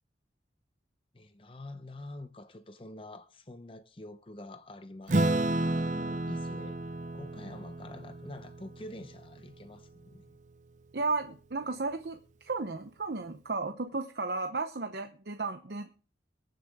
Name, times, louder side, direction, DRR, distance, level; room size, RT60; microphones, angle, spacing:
voice 1, 1.1-6.8 7.1-10.4, left 1 dB, 30° left, 0.8 m, -47 dB
Acoustic guitar / Strum, 5.1-9.9, right 2 dB, 45° right, 0.5 m, -32 dB
voice 2, 10.9-15.9, right 3 dB, 70° right, 0.8 m, -34 dB
23.5 x 7.9 x 3.6 m
head